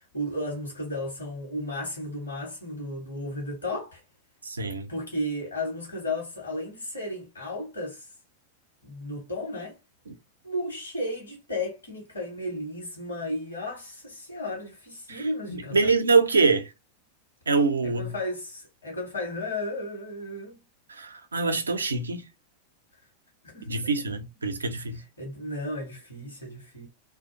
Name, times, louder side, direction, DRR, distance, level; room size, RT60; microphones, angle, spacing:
voice 1, 0.1-4.0 4.9-8.0 8.8-9.8 10.4-15.9 18.0-20.5 23.4-23.9 25.2-26.9, left 1 dB, 75° left, 1.0 m, -34 dB
voice 2, 4.4-4.9 10.1-10.2 15.1-16.7 17.5-18.1 20.9-22.2 23.6-25.0, right 4 dB, 75° right, 0.4 m, -25 dB
2.4 x 2.2 x 2.5 m
figure-of-eight pair, 90°, 0 cm